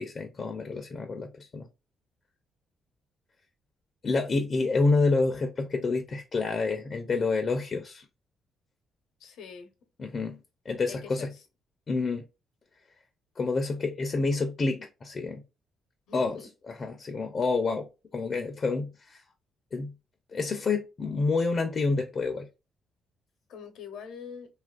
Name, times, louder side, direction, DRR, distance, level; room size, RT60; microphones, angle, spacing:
voice 1, 0.0-1.7 4.0-8.1 10.0-10.4 10.7-11.3 11.9-12.2 13.4-15.4 16.1-16.4 16.7-17.9 18.1-19.2 19.7-19.9 20.3-22.5, left 3 dB, 40° left, 0.5 m, -28 dB
voice 2, 9.2-9.7 10.9-11.4 16.1-16.5 23.5-24.5, left 6 dB, 80° left, 0.7 m, -43 dB
2.7 x 2.4 x 2.3 m
cardioid pair, 90°, 0 cm